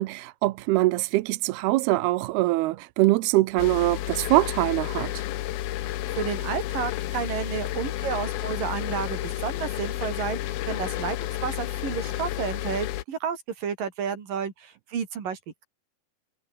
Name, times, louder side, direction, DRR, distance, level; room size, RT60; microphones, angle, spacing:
voice 1, 0.0-5.2, right 19 dB, 90° right, 2.7 m, -23 dB
sound 1, 3.6-13.0, left 15 dB, 75° left, 2.8 m, -31 dB
voice 2, 6.1-15.6, right 7 dB, 60° right, 4.5 m, -31 dB
omnidirectional pair, 4.5 m